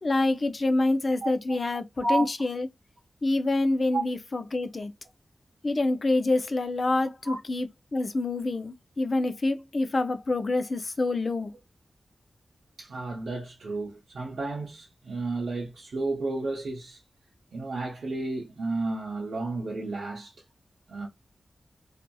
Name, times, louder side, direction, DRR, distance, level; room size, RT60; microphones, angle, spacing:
voice 1, 0.0-2.7 3.2-4.9 5.6-11.5, left 2 dB, 50° left, 0.4 m, -27 dB
voice 2, 1.2-1.6 2.0-2.3 3.9-4.0 7.2-7.4 12.8-17.0 17.5-20.3 20.9-21.1, right 2 dB, 85° right, 0.6 m, -32 dB
2.7 x 2.5 x 2.2 m
wide cardioid pair, 80°, 0 cm